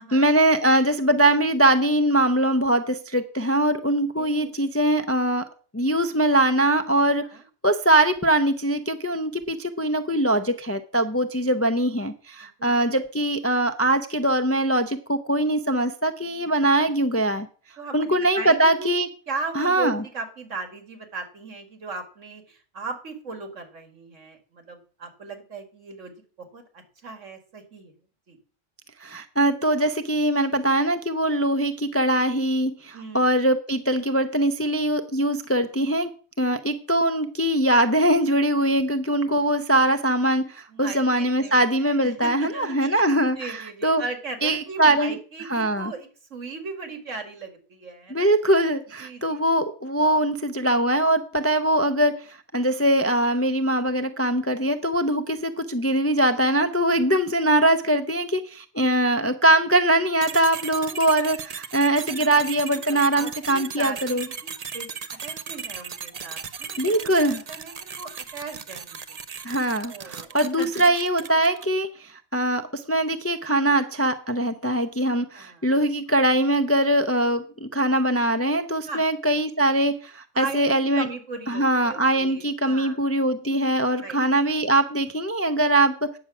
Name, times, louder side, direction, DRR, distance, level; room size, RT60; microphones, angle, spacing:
voice 1, 0.0-5.5 5.7-7.2 7.6-17.5 17.9-19.1 19.6-20.0 29.0-36.1 36.4-44.0 44.4-45.2 45.5-45.9 48.1-64.3 66.8-67.4 69.4-81.1 81.5-86.2, right 1 dB, 20° left, 7 dB, 0.4 m, -22 dB
voice 2, 4.2-4.5 7.3-7.4 12.6-12.7 17.8-18.9 19.3-27.9 28.3-28.4 32.9-33.3 40.7-43.0 43.3-48.4 49.0-49.4 56.9-57.1 60.7-61.1 62.2-64.9 65.2-69.2 69.8-70.9 75.3-75.7 78.9-79.0 80.3-83.0 84.0-84.2, right 3 dB, 80° right, 6 dB, 2.3 m, -37 dB
sound 1, 60.2-71.8, right 6 dB, 40° right, 0.6 m, -37 dB
9.3 x 7.0 x 6.0 m, 0.41 s
omnidirectional pair, 1.3 m